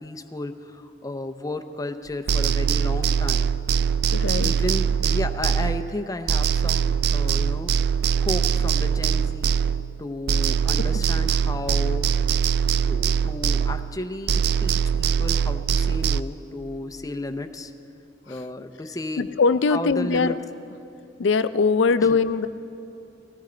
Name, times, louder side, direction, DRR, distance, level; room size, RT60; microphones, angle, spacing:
voice 1, 0.0-3.5 4.4-7.7 8.2-9.6 10.0-12.1 12.9-17.7 18.3-19.3 19.7-20.4 22.0-22.2, left 2 dB, 20° left, 7 dB, 0.6 m, -33 dB
sound 1, 2.3-6.0 6.3-10.0 10.3-14.0 14.3-16.2, right 7 dB, 60° right, 0.3 m, -22 dB
voice 2, 4.1-4.5 18.3-18.4 19.2-20.3 21.2-22.5, left 4 dB, 85° left, 13 dB, 0.5 m, -21 dB
18.5 x 14.5 x 3.9 m, 2.7 s
head